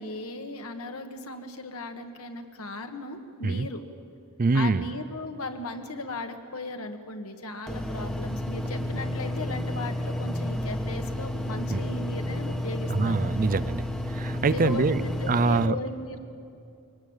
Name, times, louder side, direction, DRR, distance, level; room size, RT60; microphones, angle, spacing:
voice 1, 0.0-3.8 4.5-13.2 14.5-16.2, left 2 dB, 70° left, 5 dB, 1.7 m, -37 dB
voice 2, 4.4-4.8 11.7-11.8 12.9-15.0 15.3-15.8, right 4 dB, 40° right, 15 dB, 0.5 m, -24 dB
sound 1, 7.7-15.7, left 1 dB, 5° left, 1.2 m, -31 dB
23.0 x 18.5 x 8.9 m, 2.5 s
head